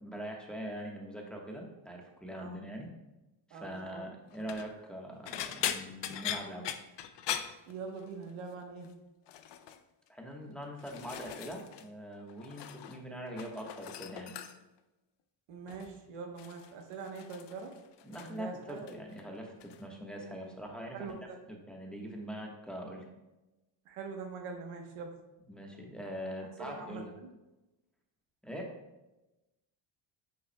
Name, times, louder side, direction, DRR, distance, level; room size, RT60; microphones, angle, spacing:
voice 1, 0.0-2.9 3.5-6.7 10.1-14.3 18.0-21.2 21.5-23.0 25.5-27.1 28.4-28.8, equal, ahead, -1 dB, 1.2 m, -42 dB
voice 2, 2.3-2.6 3.5-4.1 7.7-8.9 15.5-17.8 18.1-19.0 20.9-21.4 23.8-25.1 26.6-27.3, right 4 dB, 85° right, 3 dB, 1.1 m, -43 dB
sound 1, 4.3-4.7 5.3-8.3 8.6-8.9 9.3-9.8 10.5-11.9 12.1-13.0 13.3-14.8 15.7-16.0 16.4-18.4 18.7-19.2 19.6-19.8 21.1-21.2, left 10 dB, 60° left, 0.6 m, -40 dB
8.3 x 5.7 x 2.2 m, 1.0 s
cardioid pair, 95°, 49 cm